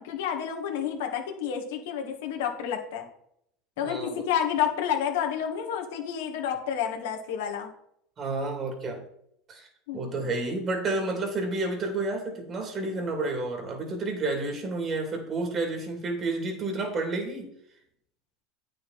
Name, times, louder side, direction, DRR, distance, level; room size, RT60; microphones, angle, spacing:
voice 1, 0.0-3.1 3.8-7.7 9.9-10.3, left 8 dB, 80° left, 3 dB, 1.8 m, -30 dB
voice 2, 3.8-4.3 8.2-9.0 9.5-17.5, right 2 dB, 35° right, 3 dB, 2.9 m, -30 dB
9.2 x 6.9 x 4.2 m, 0.72 s
supercardioid pair, 110°, 0 cm